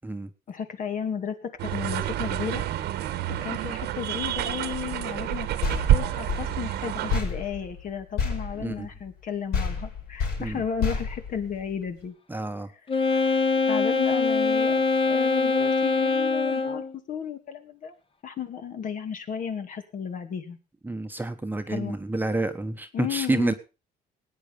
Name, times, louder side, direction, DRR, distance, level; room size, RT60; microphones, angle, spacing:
voice 1, 0.5-2.7 3.3-5.5 5.9-12.1 13.1-13.4 13.7-17.9 18.2-20.6 21.7-22.0 22.9-23.5, left 7 dB, 50° left, 7 dB, 2.4 m, -34 dB
sound 1, 1.6-7.2, right 12 dB, 80° right, 1.5 m, -28 dB
sound 2, 5.6-9.2 9.5-12.0, left 5 dB, 70° left, 6.0 m, -31 dB
voice 2, 12.3-12.7 20.8-23.5, right 2 dB, 10° right, 7 dB, 1.2 m, -29 dB
Wind instrument woodwind instrument, 12.9-16.9, left 4 dB, 30° left, 1.6 m, -23 dB
19.0 x 9.3 x 5.1 m, 0.33 s
cardioid pair, 110°, 17 cm